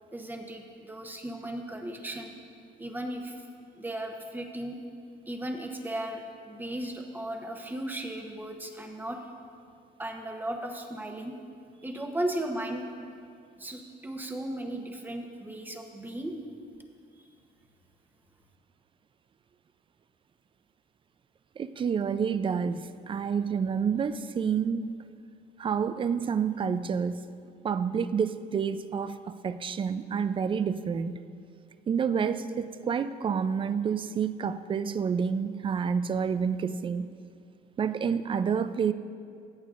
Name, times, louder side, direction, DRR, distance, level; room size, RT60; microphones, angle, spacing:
voice 1, 0.1-2.4 2.8-3.4 3.7-4.8 5.3-9.2 10.0-11.3 11.8-12.8 13.6-16.3 17.2-17.3, right 1 dB, 10° right, 3 dB, 0.9 m, -36 dB
voice 2, 21.6-25.0 25.6-27.2 27.6-31.2 31.9-37.1 37.8-38.9, right 6 dB, 30° right, 13 dB, 0.4 m, -29 dB
16.0 x 8.1 x 2.5 m, 2.3 s
cardioid pair, 105°, 18 cm